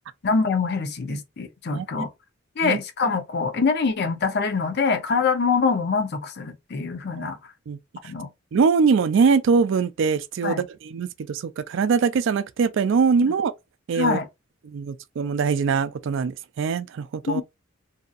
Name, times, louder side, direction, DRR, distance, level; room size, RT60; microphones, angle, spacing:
voice 1, 0.2-2.1 2.6-7.4 8.0-8.3 10.4-10.6 14.0-14.3 17.3-17.4, left 4 dB, 55° left, 0.6 m, -24 dB
voice 2, 1.7-2.1 2.6-2.8 7.2-7.3 7.7-7.8 8.5-13.5 13.9-14.2 14.7-17.4, right 5 dB, 65° right, 0.3 m, -22 dB
2.7 x 2.4 x 2.4 m
head